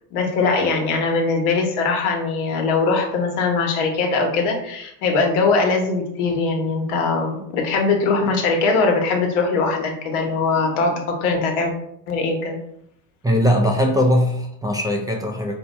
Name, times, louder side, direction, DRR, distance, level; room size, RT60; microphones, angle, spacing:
voice 1, 0.1-11.7 12.1-12.6, left 4 dB, 85° left, 2 dB, 1.1 m, -21 dB
voice 2, 13.2-15.5, equal, 10° right, 1 dB, 0.3 m, -20 dB
4.5 x 2.2 x 4.0 m, 0.77 s
supercardioid pair, 115°, 42 cm